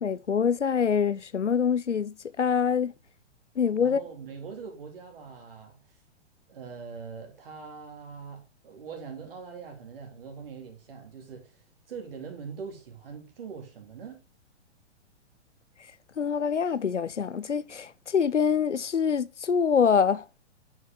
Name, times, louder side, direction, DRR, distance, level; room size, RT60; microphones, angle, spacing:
voice 1, 0.0-2.9 3.6-4.0 16.2-20.2, left 6 dB, 85° left, 0.6 m, -25 dB
voice 2, 3.8-5.8 6.5-11.5 11.9-14.2, right 6 dB, 55° right, 3.1 m, -42 dB
9.3 x 5.6 x 3.9 m
figure-of-eight pair, 115°, 35 cm